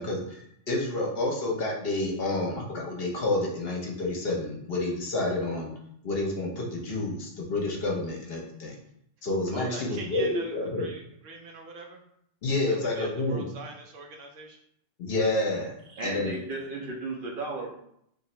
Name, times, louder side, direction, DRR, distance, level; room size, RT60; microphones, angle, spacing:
voice 1, 0.0-5.7 6.0-8.7 9.2-10.9 12.4-13.5 15.0-15.7 16.0-16.3, left 2 dB, 55° left, -1 dB, 0.9 m, -29 dB
voice 2, 9.5-12.0 12.7-14.6, right 2 dB, 80° right, 1 dB, 1.1 m, -43 dB
voice 3, 16.0-17.7, right 2 dB, 55° right, -1 dB, 0.7 m, -34 dB
2.9 x 2.6 x 4.2 m, 0.72 s
omnidirectional pair, 1.3 m